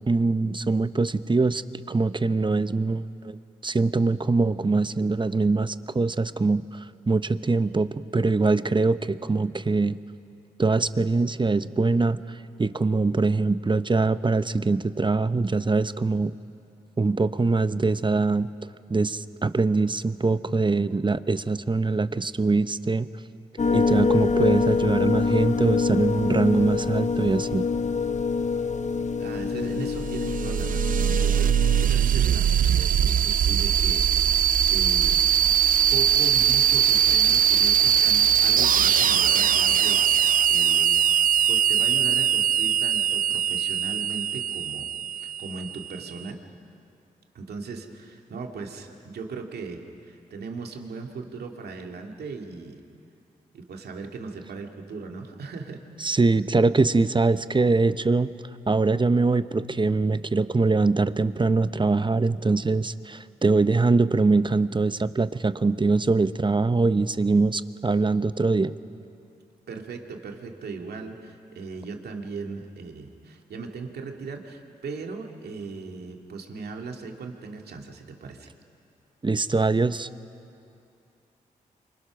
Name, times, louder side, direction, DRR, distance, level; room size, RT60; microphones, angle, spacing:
voice 1, 0.1-10.0 10.6-16.3 17.0-18.5 18.9-23.1 23.7-27.6 56.0-58.3 58.7-68.7 79.2-80.1, right 3 dB, 30° right, 13 dB, 0.9 m, -23 dB
sound 1, 23.6-31.9, left 4 dB, 45° left, 1.0 m, -25 dB
voice 2, 29.2-34.1 34.7-35.2 35.9-41.0 41.5-46.4 47.3-52.8 53.5-56.1 69.7-78.5, right 4 dB, 75° right, 2 dB, 2.4 m, -38 dB
sound 2, 29.8-46.1, right 9 dB, 55° right, 0.5 m, -21 dB
28.5 x 25.0 x 6.1 m, 2.6 s
supercardioid pair, 40°, 17 cm